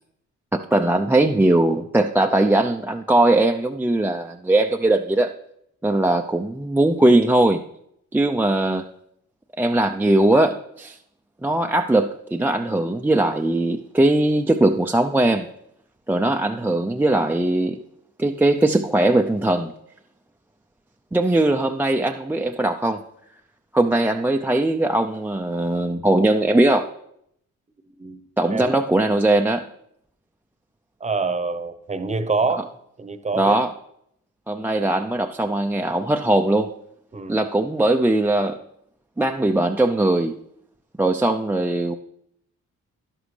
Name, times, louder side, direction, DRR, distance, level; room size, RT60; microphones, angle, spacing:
voice 1, 0.5-5.3 5.8-7.6 8.1-8.8 9.6-11.0 11.4-15.5 16.1-17.8 18.2-19.7 21.1-23.0 23.7-26.9 28.4-29.7 33.4-33.7 34.5-36.7 37.3-38.6 39.2-40.3 41.0-42.0, right 1 dB, 5° right, 3 dB, 0.4 m, -20 dB
voice 2, 31.0-32.7 33.0-33.6 37.1-37.4, right 4 dB, 25° right, 10 dB, 0.9 m, -26 dB
11.5 x 11.0 x 3.3 m, 0.74 s
cardioid pair, 90°, 30 cm